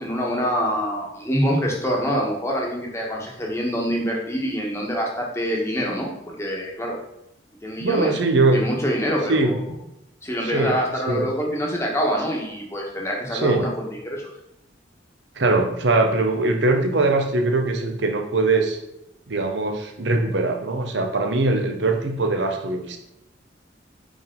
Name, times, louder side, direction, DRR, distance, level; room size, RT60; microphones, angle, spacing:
voice 1, 0.0-7.0 7.6-8.2 8.5-9.7 10.2-14.2, equal, 15° left, -2 dB, 1.3 m, -25 dB
voice 2, 7.8-8.6 9.3-9.5 10.4-10.7 11.1-11.2 13.3-13.7 15.4-18.8 19.3-23.0, right 2 dB, 75° right, 5 dB, 0.9 m, -21 dB
5.3 x 5.1 x 3.7 m, 0.83 s
head